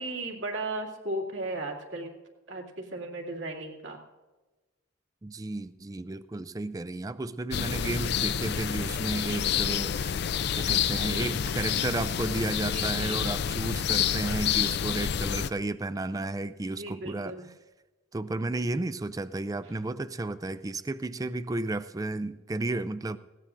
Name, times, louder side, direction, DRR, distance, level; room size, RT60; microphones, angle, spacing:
voice 1, 0.0-2.1 2.5-4.0 10.9-11.4 12.7-13.3 16.6-17.5, right 2 dB, 70° right, 0 dB, 2.4 m, -36 dB
voice 2, 5.2-10.2 10.5-17.3 18.1-23.2, right 2 dB, 20° right, 14 dB, 0.3 m, -33 dB
sound 1, 7.5-15.5, left 8 dB, 55° left, 0.4 m, -28 dB
20.0 x 16.5 x 2.6 m, 1.2 s
head